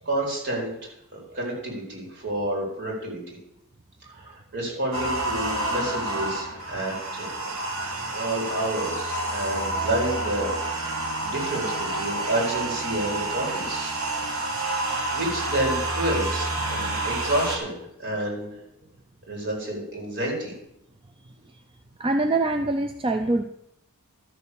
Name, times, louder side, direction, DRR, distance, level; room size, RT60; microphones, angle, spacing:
voice 1, 0.0-3.4 4.1-7.3 8.1-13.9 15.1-18.6 19.3-20.5, right 1 dB, 55° right, -1 dB, 4.5 m, -29 dB
voice 2, 4.1-4.4 7.9-8.0 22.0-23.4, right 2 dB, 25° right, 7 dB, 0.5 m, -25 dB
sound 1, 4.9-17.6, right 2 dB, 70° right, 2.5 m, -29 dB
13.0 x 6.9 x 7.0 m, 0.81 s
head